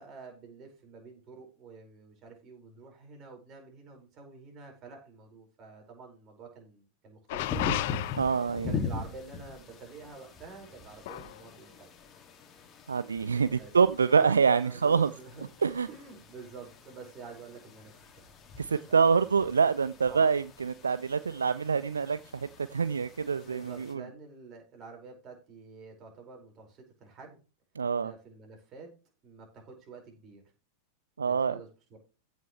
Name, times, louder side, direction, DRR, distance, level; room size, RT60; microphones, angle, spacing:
voice 1, 0.0-7.9 8.5-11.9 13.6-13.7 14.1-14.3 14.6-15.4 15.9-17.9 18.8-19.2 20.1-20.3 23.4-27.4 28.0-28.9 29.2-30.4 31.2-32.0, right 4 dB, 30° right, 2 dB, 5.3 m, -48 dB
sound 1, 7.3-8.7 11.1-11.4, left 18 dB, 50° left, 0.4 m, -34 dB
sound 2, 7.4-23.9, left 4 dB, 25° left, 2.5 m, -42 dB
voice 2, 8.2-8.8 12.9-15.1 15.6-15.9 18.6-24.0 27.8-28.1 31.2-31.6, right 5 dB, 75° right, 16 dB, 0.4 m, -26 dB
15.5 x 6.4 x 3.3 m, 0.33 s
figure-of-eight pair, 90°, 0 cm